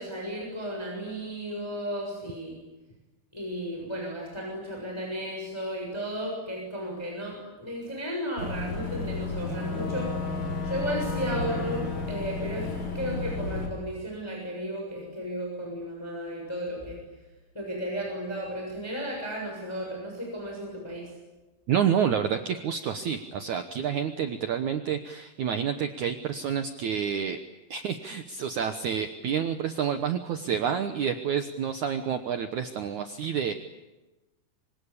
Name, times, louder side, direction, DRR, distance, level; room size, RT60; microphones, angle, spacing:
voice 1, 0.0-2.6 3.3-10.1 10.6-12.7 12.9-17.0 17.5-21.1, equal, 5° left, 0 dB, 6.4 m, -34 dB
Boat Water vehicle / Engine, 8.4-13.7, left 3 dB, 35° left, 6.3 m, -32 dB
voice 2, 21.7-27.4 27.7-33.5, right 8 dB, 65° right, 7 dB, 2.1 m, -29 dB
26.5 x 25.5 x 8.8 m, 1.1 s
omnidirectional pair, 4.6 m